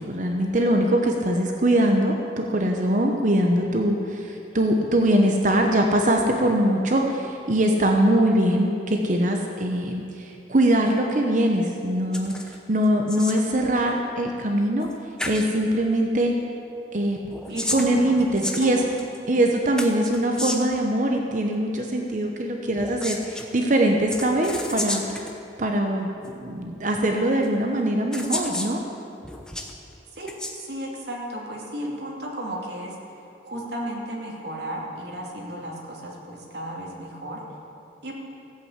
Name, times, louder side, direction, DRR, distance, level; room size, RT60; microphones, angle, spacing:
voice 1, 0.0-12.3 12.7-14.9 15.3-16.3 16.9-17.2 17.7-18.8 19.3-25.2 25.6-28.8, right 1 dB, 45° right, 2 dB, 0.9 m, -22 dB
sound 1, 12.1-12.6 12.8-13.5 14.8-14.9 15.2-15.5 17.2-19.2 19.8-20.8 22.7-23.5 24.1-25.3 26.2-26.3 27.4-27.5 28.1-28.7 29.2-29.7 30.2-30.5, left 1 dB, 5° left, 0.9 m, -32 dB
voice 2, 13.3-13.8 17.5-18.8 30.1-37.4 38.0-38.1, right 1 dB, 65° right, -2 dB, 2.7 m, -34 dB
15.0 x 8.5 x 8.2 m, 2.7 s
head